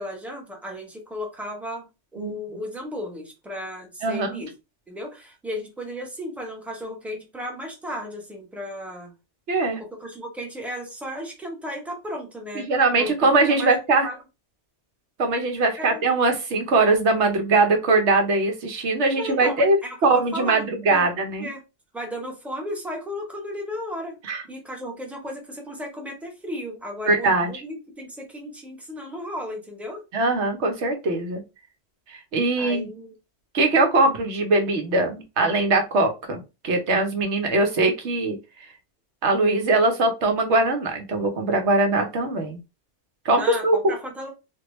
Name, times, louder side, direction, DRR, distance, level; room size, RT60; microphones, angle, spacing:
voice 1, 0.0-4.5 4.9-9.1 10.0-12.7 13.0-14.2 15.8-16.0 19.1-20.0 20.3-21.1 21.4-21.6 21.9-24.2 24.5-30.0 32.6-33.1 43.3-44.3, equal, ahead, 0.8 m, -35 dB
voice 2, 4.0-4.5 9.5-9.8 12.5-14.1 15.2-19.8 20.0-21.5 24.2-24.4 27.0-27.5 30.1-31.4 32.1-32.9 33.5-38.4 39.2-42.6 43.2-44.0, right 2 dB, 70° right, 1.1 m, -21 dB
2.9 x 2.6 x 3.1 m
omnidirectional pair, 1.2 m